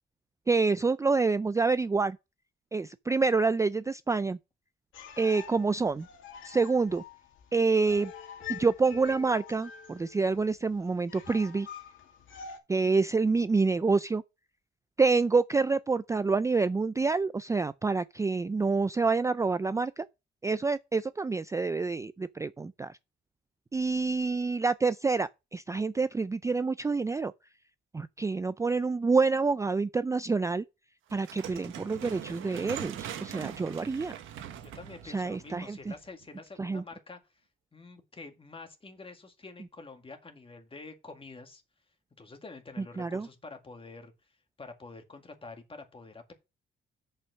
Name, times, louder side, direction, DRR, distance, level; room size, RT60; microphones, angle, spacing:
voice 1, 0.5-2.2 2.7-4.4 5.2-6.1 6.4-7.0 7.5-8.1 8.5-11.7 12.7-14.2 15.0-20.1 20.4-22.9 23.7-27.3 27.9-30.6 31.1-34.2 35.0-35.9 36.6-36.8 43.0-43.3, right 4 dB, 15° right, 0.4 m, -27 dB
sound 1, 4.9-12.6, left 8 dB, 80° left, 2.3 m, -46 dB
Piano, 7.9-10.5, left 6 dB, 55° left, 2.8 m, -50 dB
sound 2, 31.1-36.2, right 10 dB, 85° right, 1.4 m, -42 dB
voice 2, 34.6-37.2 37.7-41.6 42.2-44.1 44.6-46.3, left 3 dB, 25° left, 2.1 m, -47 dB
6.9 x 5.6 x 6.3 m
cardioid pair, 90°, 20 cm